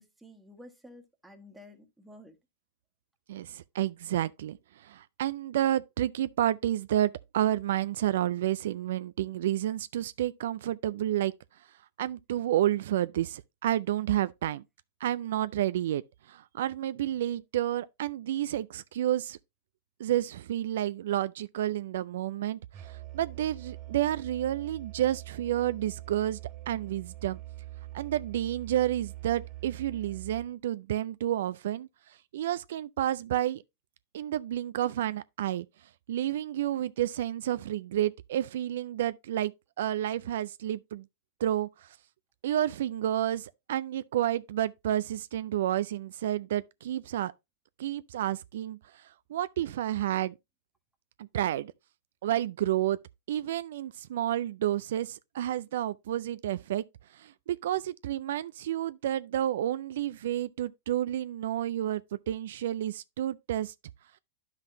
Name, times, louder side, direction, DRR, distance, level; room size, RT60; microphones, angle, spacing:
voice 1, 0.0-2.4, left 1 dB, 5° right, 1.4 m, -52 dB
voice 2, 3.3-11.3 12.0-14.6 15.0-16.0 16.3-19.4 20.0-26.4 26.7-27.4 27.9-33.6 34.1-35.7 36.1-39.5 39.8-41.0 41.4-42.0 42.4-47.3 47.8-50.3 51.2-51.7 52.2-53.0 53.3-56.8 57.1-63.7, right 12 dB, 70° right, 0.3 m, -30 dB
Musical instrument, 22.7-30.5, right 16 dB, 35° right, 2.2 m, -44 dB
10.5 x 5.7 x 2.7 m
hypercardioid pair, 110°, 0 cm